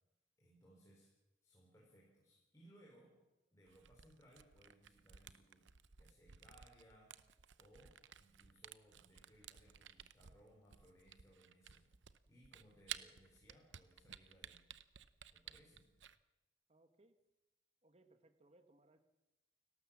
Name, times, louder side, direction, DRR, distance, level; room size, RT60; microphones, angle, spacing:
voice 1, 0.4-1.1 1.4-3.2 3.5-5.7 6.0-7.2 7.6-14.6 15.3-15.9, right 1 dB, 15° left, -3 dB, 4.1 m, -66 dB
Camera, 3.7-16.2, right 10 dB, 65° right, 0.7 m, -55 dB
voice 2, 16.7-17.2 17.8-19.0, right 2 dB, 30° right, 9 dB, 1.3 m, -69 dB
29.5 x 12.5 x 7.3 m, 1.1 s
head